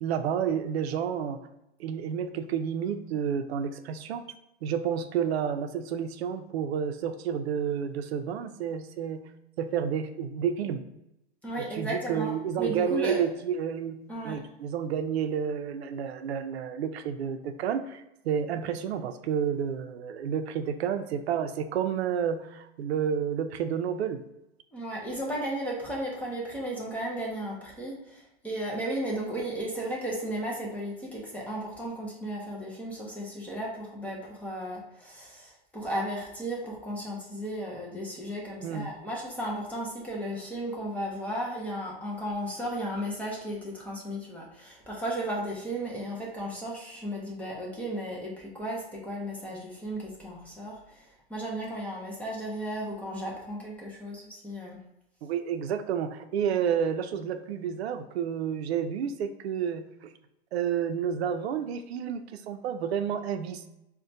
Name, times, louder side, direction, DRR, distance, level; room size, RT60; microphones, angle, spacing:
voice 1, 0.0-1.4 1.8-4.2 4.6-9.2 9.6-10.8 11.6-14.0 14.2-24.2 38.6-38.9 55.2-60.1 60.5-63.7, right 8 dB, 80° right, 9 dB, 0.5 m, -30 dB
voice 2, 11.4-13.2 14.1-14.4 24.7-54.8, right 1 dB, 5° left, -4 dB, 0.4 m, -35 dB
4.2 x 2.1 x 2.6 m, 0.86 s
hypercardioid pair, 135°, 31 cm